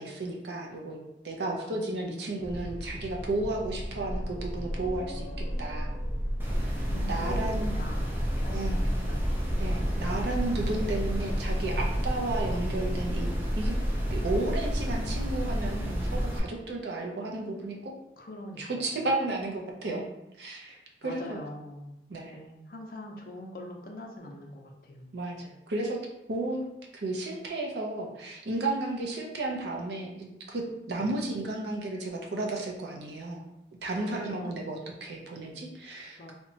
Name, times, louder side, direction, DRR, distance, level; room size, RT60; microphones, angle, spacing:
voice 1, 0.0-5.9 6.9-7.8 8.5-8.9 9.6-13.3 13.6-13.8 14.1-17.9 18.6-20.0 20.4-21.4 22.1-22.4 25.1-26.0 26.3-26.7 26.9-33.4 33.8-36.3, right 2 dB, 75° right, 0 dB, 0.5 m, -33 dB
voice 2, 1.4-2.4 6.9-9.6 10.2-10.4 18.2-19.0 20.7-22.0 22.3-25.1 30.9-31.1 34.0-34.6 36.2-36.3, left 1 dB, 50° left, 0 dB, 0.4 m, -43 dB
sound 1, 2.4-13.0, equal, 40° right, 1.0 m, -37 dB
sound 2, 6.4-16.4, equal, 10° right, 0.3 m, -30 dB
2.8 x 2.2 x 2.6 m, 0.87 s
head